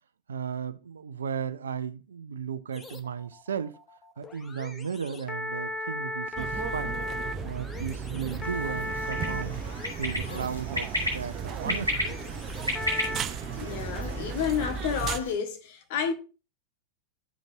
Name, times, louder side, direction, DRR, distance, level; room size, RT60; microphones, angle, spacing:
voice 1, 0.3-3.8 4.2-7.0 7.4-9.6 10.0-12.2, right 7 dB, 70° right, 0.5 m, -35 dB
sound 1, 2.7-13.2, left 1 dB, 15° left, 1.0 m, -37 dB
sound 2, 6.4-15.2, right 6 dB, 30° right, 0.7 m, -35 dB
sound 3, 8.4-15.3, left 1 dB, 85° left, 4.8 m, -35 dB
voice 2, 13.6-16.1, left 7 dB, 50° left, 1.4 m, -30 dB
14.5 x 5.2 x 2.7 m
figure-of-eight pair, 90°, 0 cm